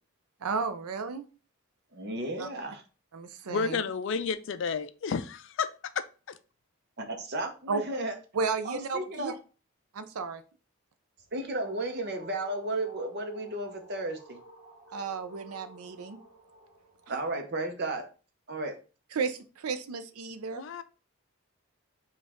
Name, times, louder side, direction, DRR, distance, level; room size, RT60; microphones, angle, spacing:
voice 1, 0.4-1.2 2.4-2.5 3.1-3.8 7.7-7.8 8.3-9.3 9.9-10.4 14.9-16.2 19.1-20.6, right 5 dB, 80° right, 11 dB, 0.5 m, -33 dB
voice 2, 1.9-2.8 7.0-8.1 8.6-9.3 11.3-14.4 17.1-18.1 18.5-18.8, right 2 dB, 45° right, 5 dB, 0.7 m, -33 dB
voice 3, 3.5-5.7 6.0-6.4 20.5-20.8, left 5 dB, 55° left, 12 dB, 0.3 m, -31 dB
sound 1, 11.2-17.3, right 1 dB, 20° right, 1.9 m, -53 dB
5.1 x 2.4 x 3.5 m, 0.35 s
head